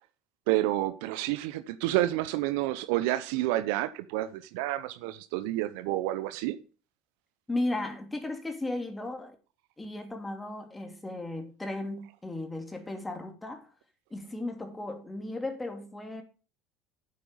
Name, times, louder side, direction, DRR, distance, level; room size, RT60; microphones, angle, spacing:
voice 1, 0.5-6.6, right 15 dB, 70° right, 0.9 m, -29 dB
voice 2, 7.5-9.3 9.8-13.7 14.1-16.2, left 2 dB, 15° left, 3.0 m, -35 dB
9.3 x 8.4 x 5.4 m
hypercardioid pair, 70°, 0 cm